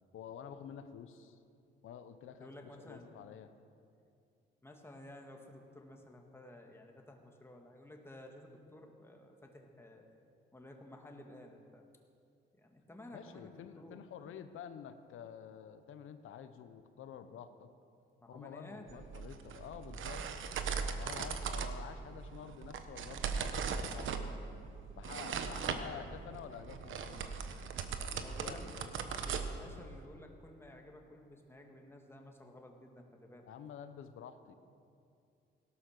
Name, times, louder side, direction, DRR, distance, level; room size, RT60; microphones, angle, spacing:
voice 1, 0.1-1.4 1.8-3.5 13.1-17.7 18.3-20.2 21.0-24.3 25.0-27.3 28.1-28.9 33.4-34.5, left 8 dB, 80° left, 10 dB, 1.0 m, -49 dB
voice 2, 2.4-3.0 4.6-10.1 10.5-11.9 12.5-14.0 18.2-19.1 25.3-25.6 28.2-28.7 29.1-33.5, left 1 dB, 10° left, 2 dB, 2.1 m, -53 dB
sound 1, 18.9-30.1, right 6 dB, 75° right, 1.2 m, -39 dB
17.0 x 12.0 x 6.6 m, 2.5 s
cardioid pair, 95°, 21 cm